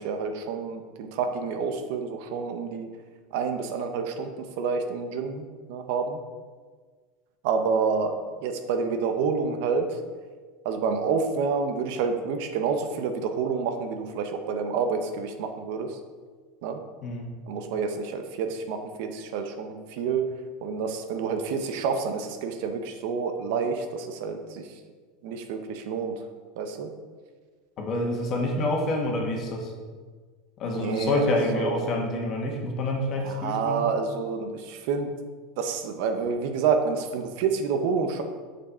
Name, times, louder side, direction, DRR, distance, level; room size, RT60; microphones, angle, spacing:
voice 1, 0.0-2.9 3.3-6.2 7.4-8.1 8.4-10.0 10.6-16.0 16.6-16.8 17.5-20.2 20.6-24.7 25.2-26.1 26.6-26.9 30.8-31.9 33.2-35.1 35.6-38.2, right 5 dB, 65° right, 6 dB, 0.9 m, -28 dB
voice 2, 27.8-29.7 30.6-33.9, left 2 dB, 40° left, 1 dB, 1.6 m, -27 dB
6.7 x 6.4 x 4.4 m, 1.5 s
supercardioid pair, 140°, 0 cm